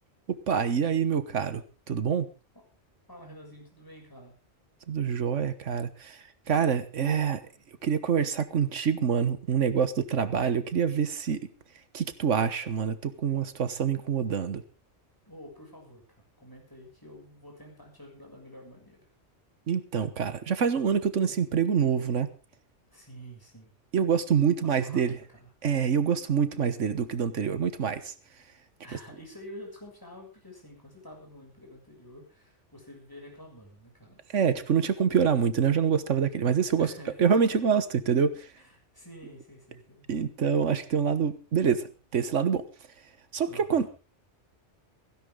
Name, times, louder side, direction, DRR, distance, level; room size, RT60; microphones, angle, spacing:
voice 1, 0.3-2.3 4.9-6.2 6.5-7.4 7.8-11.4 11.9-14.6 19.7-22.3 23.9-25.2 25.6-28.1 34.3-36.9 37.2-38.5 40.1-42.6 43.3-43.9, right 7 dB, 90° right, 12 dB, 1.6 m, -26 dB
voice 2, 3.1-4.3 15.3-19.0 22.9-23.7 24.6-25.5 28.8-34.2 36.7-37.6 38.6-40.1 43.4-43.9, equal, 15° left, 0 dB, 7.0 m, -48 dB
17.0 x 16.0 x 3.8 m, 0.34 s
omnidirectional pair, 1.2 m